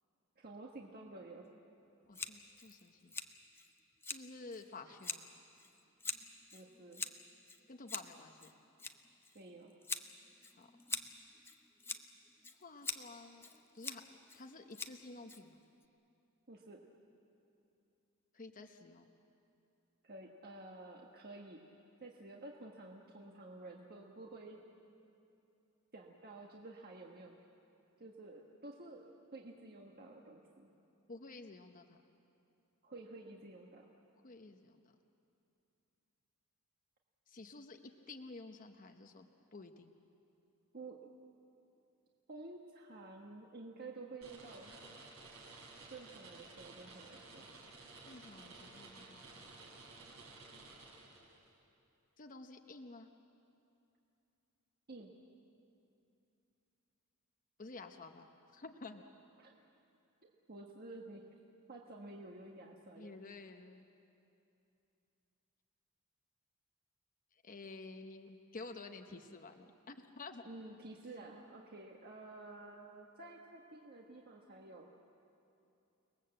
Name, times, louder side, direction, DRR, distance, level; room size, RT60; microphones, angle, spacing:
voice 1, 0.4-1.4 6.5-7.0 9.3-9.7 16.5-16.9 20.0-21.6 22.0-24.6 25.9-27.4 28.0-30.7 32.8-33.9 40.7-41.0 42.3-44.7 45.9-47.5 54.9-55.1 59.4-59.5 60.2-61.2 61.7-63.2 69.1-69.2 70.4-74.9, right 2 dB, 45° right, 0 dB, 1.5 m, -51 dB
voice 2, 2.1-3.2 4.0-5.2 7.7-8.5 10.6-10.7 12.6-13.5 13.7-15.6 18.3-19.1 31.1-32.0 34.2-34.8 37.3-39.9 48.1-49.6 52.2-53.1 57.6-59.0 63.0-63.9 67.3-70.4, left 3 dB, 40° left, 5 dB, 0.9 m, -51 dB
Scissors, 2.1-15.8, left 3 dB, 10° left, 0.8 m, -46 dB
sound 1, 44.2-51.5, right 3 dB, 70° right, 5.5 m, -54 dB
29.0 x 20.0 x 7.8 m, 2.8 s
head